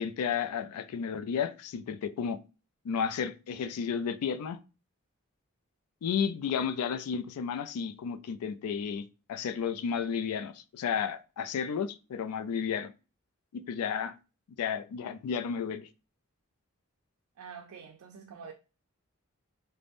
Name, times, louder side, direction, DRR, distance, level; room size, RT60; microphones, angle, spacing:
voice 1, 0.0-2.4 2.8-4.6 6.0-12.9 13.5-14.2 14.6-15.9, left 7 dB, 90° left, 0.3 m, -32 dB
voice 2, 17.4-18.5, right 6 dB, 85° right, 0.4 m, -46 dB
2.6 x 2.0 x 3.3 m
head